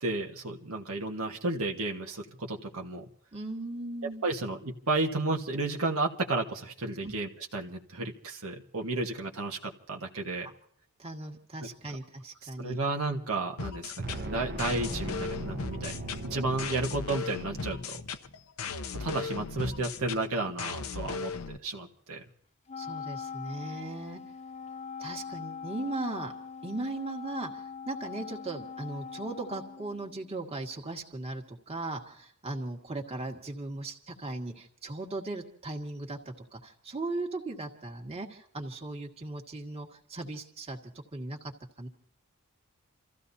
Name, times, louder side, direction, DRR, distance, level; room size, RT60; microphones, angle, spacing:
voice 1, 0.0-3.0 4.2-10.5 12.4-16.0 16.2-18.0 18.9-22.2, right 2 dB, 75° right, 1 dB, 1.6 m, -32 dB
voice 2, 3.3-4.2 7.0-7.1 11.0-12.8 22.8-24.2 25.0-26.3 26.6-36.2 36.5-40.8 41.1-41.5 41.8-41.9, right 2 dB, 30° right, 1 dB, 2.0 m, -38 dB
sound 1, 13.6-21.6, left 5 dB, 75° left, 0.8 m, -37 dB
sound 2, 14.0-17.5, right 1 dB, 50° right, 1.2 m, -38 dB
Wind instrument woodwind instrument, 22.7-30.3, left 6 dB, 30° left, 0.5 m, -42 dB
29.5 x 15.0 x 2.8 m, 0.64 s
head